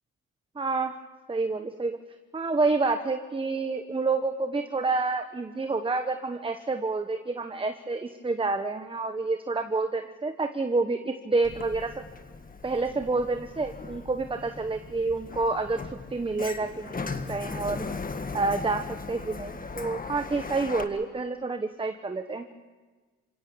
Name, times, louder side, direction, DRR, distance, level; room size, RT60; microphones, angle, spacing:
voice 1, 0.5-1.0 1.3-2.0 2.3-12.0 12.6-15.8 16.1-17.8 18.3-22.5, right 3 dB, 15° right, 7 dB, 1.2 m, -28 dB
Sliding door, 11.4-20.8, left 4 dB, 30° left, 1.6 m, -38 dB
28.0 x 17.0 x 7.0 m, 1.3 s
cardioid pair, 90°, 30 cm